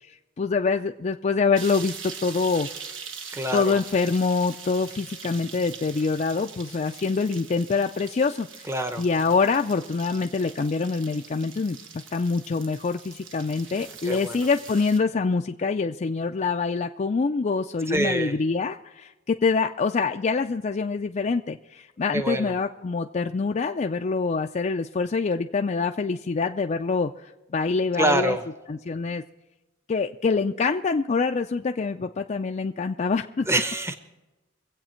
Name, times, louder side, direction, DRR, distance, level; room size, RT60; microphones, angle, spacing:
voice 1, 0.0-2.7 3.5-8.7 9.0-11.8 12.1-28.4 28.7-29.2 29.9-33.5, left 4 dB, 40° left, 4 dB, 0.4 m, -25 dB
sound 1, 1.6-15.0, right 6 dB, 80° right, 1.3 m, -42 dB
voice 2, 3.3-3.8 8.7-9.0 14.1-14.4 17.9-18.4 22.1-22.5 28.0-28.4 33.5-34.0, right 1 dB, 15° right, 8 dB, 0.8 m, -25 dB
24.0 x 8.2 x 4.4 m, 1.1 s
head